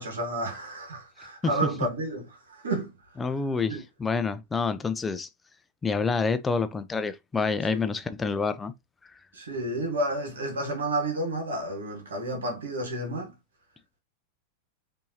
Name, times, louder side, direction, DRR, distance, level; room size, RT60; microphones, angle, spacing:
voice 1, 0.0-2.2 2.5-2.9 3.7-3.8 7.7-7.8 9.3-13.3, right 1 dB, 65° right, 1.4 m, -31 dB
voice 2, 3.2-5.3 5.8-8.7, left 4 dB, 15° left, 0.5 m, -28 dB
5.5 x 2.7 x 2.8 m
figure-of-eight pair, 90°, 0 cm